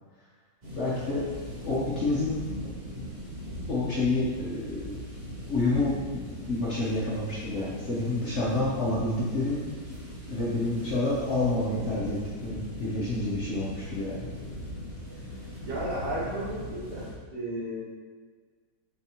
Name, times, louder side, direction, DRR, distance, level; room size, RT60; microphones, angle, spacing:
sound 1, 0.6-17.1, left 1 dB, 35° right, 1.5 m, -40 dB
voice 1, 0.8-1.2 1.6-2.4 3.7-5.0 5.5-9.6 10.3-14.2, left 2 dB, 45° left, -6 dB, 1.2 m, -28 dB
voice 2, 15.2-17.8, right 1 dB, 55° right, -6 dB, 2.0 m, -34 dB
7.6 x 4.5 x 3.0 m, 1.5 s
omnidirectional pair, 1.9 m